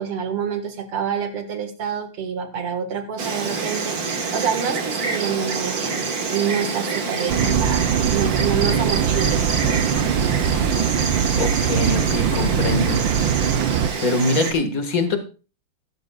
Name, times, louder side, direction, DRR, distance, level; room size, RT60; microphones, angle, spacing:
voice 1, 0.0-10.0, right 7 dB, 85° right, 6 dB, 2.6 m, -27 dB
Insect, 3.2-14.5, right 4 dB, 45° right, 1.9 m, -26 dB
sound 1, 7.3-13.9, right 8 dB, 70° right, 1.4 m, -22 dB
voice 2, 11.3-13.1 13.5-13.7 14.0-15.2, left 2 dB, 40° left, 6 dB, 2.0 m, -23 dB
16.0 x 13.0 x 2.4 m, 0.34 s
omnidirectional pair, 2.4 m